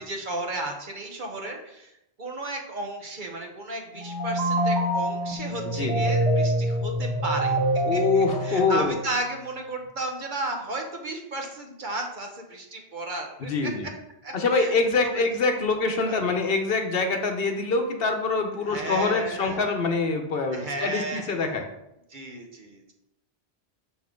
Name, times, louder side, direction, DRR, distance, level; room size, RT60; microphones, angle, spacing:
voice 1, 0.0-1.9 2.2-7.6 7.9-13.7 14.2-14.7 15.0-15.2 16.0-16.2 18.7-19.7 20.5-21.6 22.1-22.9, right 2 dB, 50° right, 2 dB, 1.1 m, -34 dB
sound 1, 3.9-9.4, right 1 dB, 90° right, 1.4 m, -26 dB
voice 2, 7.8-9.0 13.4-13.9 14.3-21.7, left 3 dB, 65° left, 5 dB, 1.0 m, -25 dB
6.2 x 5.6 x 3.8 m, 0.86 s
omnidirectional pair, 1.1 m